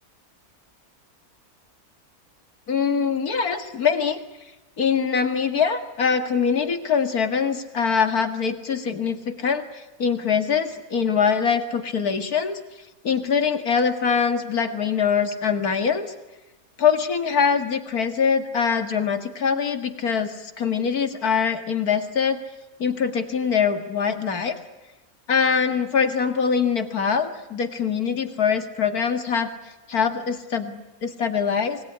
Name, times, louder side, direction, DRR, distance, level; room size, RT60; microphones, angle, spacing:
voice 1, 2.7-4.2 4.8-12.6 13.0-16.1 16.8-22.4 22.8-24.6 25.3-29.5 29.9-31.8, left 6 dB, 80° left, 7 dB, 2.5 m, -23 dB
26.5 x 20.0 x 9.9 m, 1.1 s
omnidirectional pair, 1.6 m